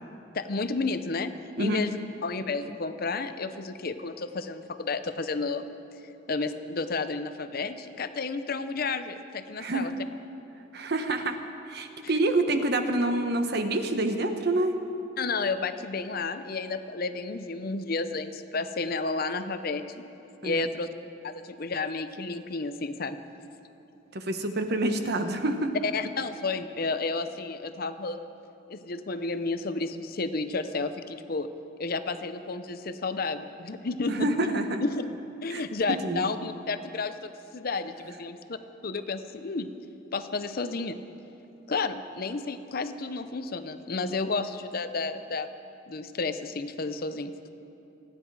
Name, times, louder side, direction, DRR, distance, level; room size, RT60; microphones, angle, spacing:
voice 1, 0.3-1.3 1.6-5.7 6.3-9.9 12.0-12.2 15.2-20.0 20.4-20.9 21.2-23.2 25.8-28.3 28.7-31.5 31.8-34.5 34.8-35.2 35.4-38.6 38.8-39.7 40.1-41.0 41.7-45.5 45.9-47.3, left 3 dB, 50° left, 10 dB, 0.7 m, -31 dB
voice 2, 9.6-9.9 10.7-11.4 11.7-14.7 20.4-20.6 24.1-25.7 34.1-34.8 35.5-35.6 36.0-36.3, right 2 dB, 55° right, 6 dB, 1.1 m, -27 dB
29.0 x 10.0 x 4.8 m, 2.9 s
head